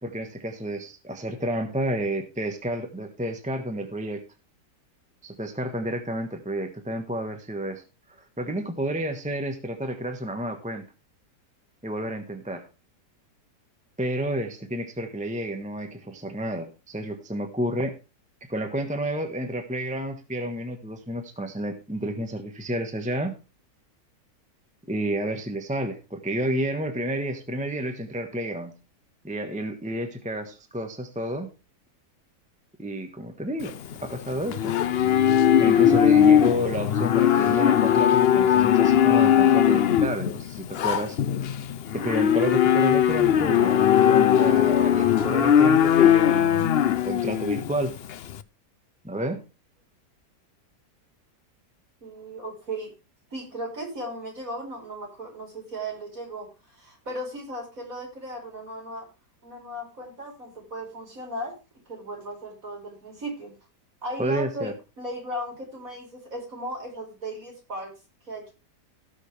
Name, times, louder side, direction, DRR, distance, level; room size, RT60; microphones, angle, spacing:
voice 1, 0.0-4.2 5.2-7.8 8.4-10.9 11.8-12.7 14.0-18.0 18.5-23.4 24.9-28.7 29.2-31.5 32.8-33.7 34.0-34.7 35.6-41.2 41.9-48.0 49.0-49.4 64.2-64.7, right 1 dB, 5° right, 5 dB, 1.1 m, -30 dB
Livestock farm animals working animals, 33.6-48.4, left 9 dB, 85° left, 0.5 m, -20 dB
voice 2, 52.0-52.9 53.3-59.1 59.4-61.5 61.9-63.5 64.0-64.7 65.0-67.9 68.3-68.5, right 1 dB, 50° right, 1 dB, 5.1 m, -36 dB
17.5 x 6.5 x 3.3 m, 0.29 s
omnidirectional pair, 1.8 m